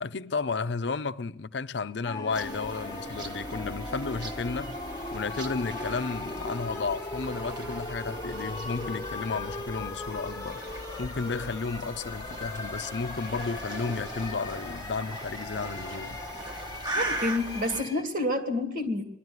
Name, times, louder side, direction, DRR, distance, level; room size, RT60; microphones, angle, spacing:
voice 1, 0.0-4.8 5.1-10.6 11.0-16.2, left 4 dB, 80° left, 0.6 m, -33 dB
sound 1, 2.0-18.0, left 2 dB, 20° left, 1.3 m, -39 dB
sound 2, 2.3-17.8, right 1 dB, 25° right, 1.3 m, -39 dB
voice 2, 16.9-19.0, left 1 dB, 50° right, 2.4 m, -28 dB
22.0 x 12.5 x 9.6 m
head